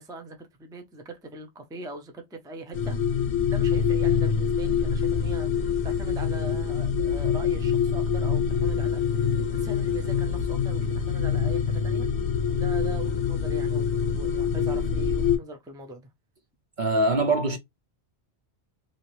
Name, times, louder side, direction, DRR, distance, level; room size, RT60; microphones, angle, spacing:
voice 1, 0.0-3.0 3.5-16.1, right 2 dB, 5° right, 0.4 m, -41 dB
sound 1, 2.7-15.4, left 7 dB, 60° left, 0.9 m, -25 dB
voice 2, 16.8-17.6, right 2 dB, 55° right, 0.6 m, -23 dB
2.8 x 2.8 x 3.0 m
omnidirectional pair, 1.1 m